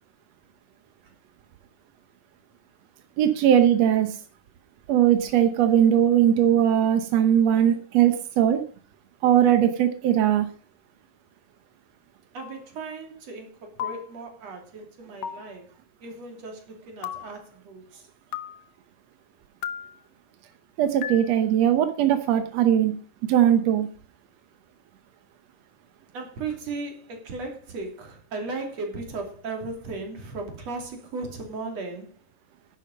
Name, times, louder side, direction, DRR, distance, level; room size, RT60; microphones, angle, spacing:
voice 1, 3.2-4.2 4.9-8.6 9.2-10.5 20.8-22.9 23.3-23.9, right 10 dB, 65° right, 1.7 m, -20 dB
voice 2, 12.3-15.7 16.0-18.1 26.1-32.2, right 3 dB, 50° right, 3.8 m, -36 dB
sound 1, 12.4-12.6 13.8-14.1 15.2-15.5 17.0-17.4 18.3-18.6 19.6-20.0 21.0-21.3, left 10 dB, 85° left, 1.3 m, -34 dB
11.0 x 10.5 x 5.2 m
omnidirectional pair, 4.0 m